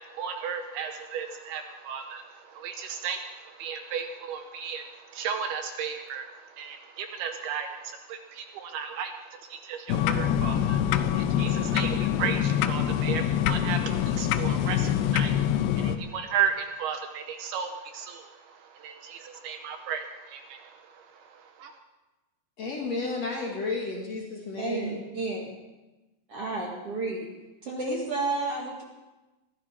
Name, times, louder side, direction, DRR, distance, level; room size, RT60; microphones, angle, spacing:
voice 1, 0.0-21.8, right 7 dB, 75° right, 6 dB, 2.6 m, -35 dB
sound 1, 9.9-16.0, left 10 dB, 80° left, 2.7 m, -25 dB
voice 2, 22.6-25.0, left 3 dB, 50° left, -1 dB, 2.4 m, -32 dB
voice 3, 24.6-25.4 26.3-27.2 27.6-28.8, right 3 dB, 50° right, -1 dB, 2.0 m, -31 dB
22.5 x 14.5 x 4.4 m, 1.1 s
omnidirectional pair, 5.0 m